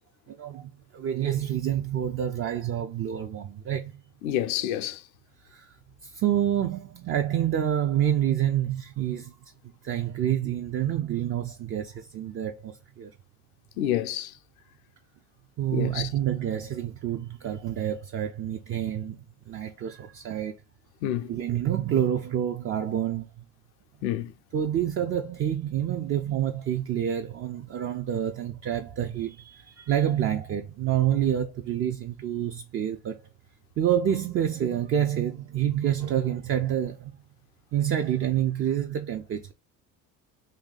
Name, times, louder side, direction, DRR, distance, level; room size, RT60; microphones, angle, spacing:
voice 1, 0.3-3.9 5.5-5.7 6.0-9.3 9.8-13.1 15.6-19.2 19.5-20.5 21.3-23.3 24.5-33.2 33.8-37.1 37.7-39.5, right 10 dB, 35° right, 0.4 m, -28 dB
voice 2, 4.2-5.0 13.8-14.3 15.7-16.1 21.0-21.3 24.0-24.3, left 11 dB, 85° left, 0.5 m, -28 dB
2.7 x 2.6 x 3.8 m
hypercardioid pair, 70°, 42 cm